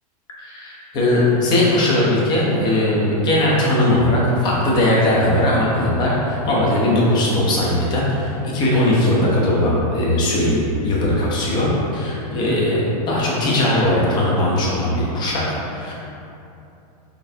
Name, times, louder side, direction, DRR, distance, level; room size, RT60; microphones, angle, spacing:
voice 1, 0.4-11.7 11.9-15.4 15.7-15.9, left 1 dB, 20° left, -5 dB, 0.7 m, -19 dB
4.1 x 3.2 x 2.7 m, 2.8 s
supercardioid pair, 165°, 20 cm